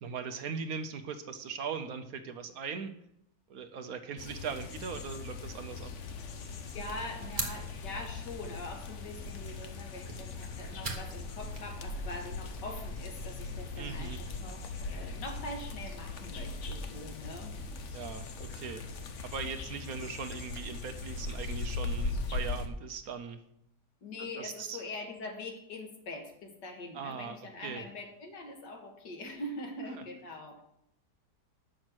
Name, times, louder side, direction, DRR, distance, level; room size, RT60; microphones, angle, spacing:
voice 1, 0.0-2.9 3.5-5.9 13.8-14.2 17.9-18.8 19.2-23.4 24.4-24.8 26.9-27.4 27.6-27.8, right 6 dB, 65° right, 8 dB, 1.2 m, -39 dB
sound 1, 4.2-22.7, left 3 dB, 55° left, 1.0 m, -39 dB
sound 2, 6.6-13.1, right 3 dB, 30° right, 1.3 m, -44 dB
voice 2, 6.7-17.6 24.0-30.6, left 2 dB, 90° left, 2 dB, 2.2 m, -43 dB
8.7 x 6.4 x 6.2 m, 0.77 s
omnidirectional pair, 1.8 m